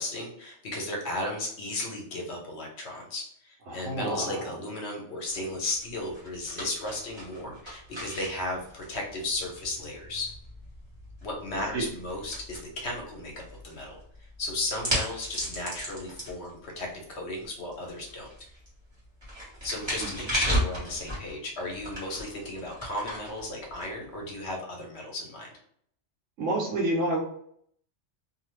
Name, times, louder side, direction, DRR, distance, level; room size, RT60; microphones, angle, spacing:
voice 1, 0.0-10.3 11.2-18.3 19.6-25.5, left 2 dB, 65° left, 0 dB, 1.1 m, -35 dB
voice 2, 3.7-4.2 11.7-11.8 26.4-27.2, right 1 dB, 90° right, -1 dB, 1.2 m, -28 dB
sound 1, 5.3-24.5, equal, 25° right, 1.1 m, -37 dB
2.7 x 2.4 x 3.1 m, 0.66 s
omnidirectional pair, 1.3 m